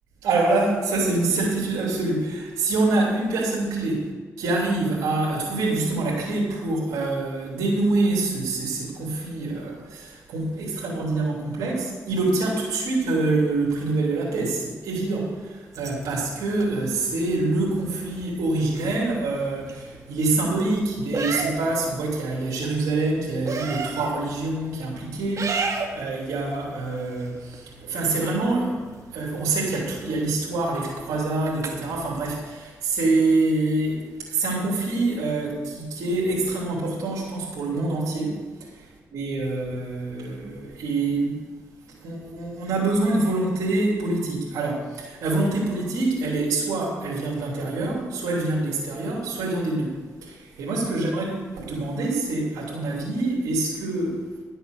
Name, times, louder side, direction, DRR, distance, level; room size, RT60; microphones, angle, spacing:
voice 1, 0.2-4.1 4.4-28.8 29.1-41.4 42.0-54.2, right 2 dB, 90° right, -5 dB, 3.2 m, -26 dB
sound 1, 15.7-32.2, right 4 dB, 65° right, 2.1 m, -36 dB
12.0 x 8.0 x 6.7 m, 1.5 s
cardioid pair, 55°, 6 cm